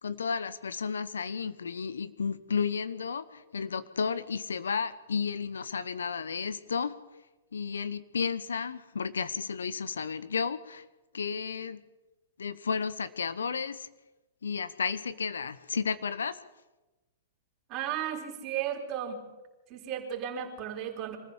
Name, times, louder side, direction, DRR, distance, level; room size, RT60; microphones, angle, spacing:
voice 1, 0.0-7.0 7.5-10.8 11.1-11.8 12.4-13.9 14.4-16.4, left 5 dB, 75° left, 15 dB, 1.0 m, -32 dB
voice 2, 17.7-19.2 19.7-21.2, right 9 dB, 35° right, 1 dB, 4.2 m, -34 dB
24.5 x 14.5 x 7.4 m, 1.1 s
figure-of-eight pair, 105°, 0 cm